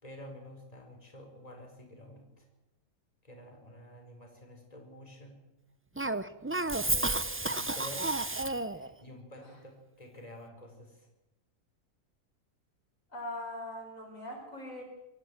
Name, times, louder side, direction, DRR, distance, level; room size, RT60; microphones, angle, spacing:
voice 1, 0.0-2.5 3.2-5.4 6.8-8.4 8.6-11.1, equal, 25° left, 2 dB, 4.6 m, -49 dB
Cough, 6.0-8.9, right 2 dB, 20° right, 0.3 m, -31 dB
voice 2, 13.1-14.8, left 1 dB, 55° left, 1 dB, 5.3 m, -41 dB
25.0 x 14.0 x 7.9 m, 0.94 s
omnidirectional pair, 1.7 m